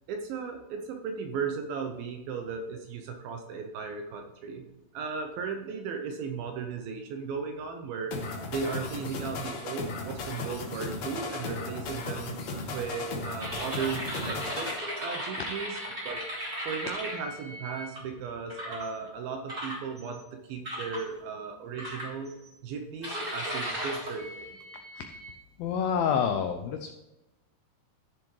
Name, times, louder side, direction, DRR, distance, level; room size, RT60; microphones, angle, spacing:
voice 1, 0.1-4.7 4.9-12.4 12.7-14.7 15.0-15.8 16.0-16.2 16.7-22.3 22.6-24.6, right 5 dB, 75° right, 4 dB, 2.3 m, -36 dB
sound 1, 8.1-14.8, left 3 dB, 65° left, 1.7 m, -36 dB
sound 2, 13.4-18.0 18.5-18.9 19.5-20.2 20.6-21.0 21.8-22.5 23.0-25.3, equal, 15° right, 2.6 m, -37 dB
voice 2, 25.6-26.9, left 7 dB, 85° left, 6 dB, 2.1 m, -28 dB
15.0 x 7.0 x 3.2 m, 1.0 s
omnidirectional pair, 4.9 m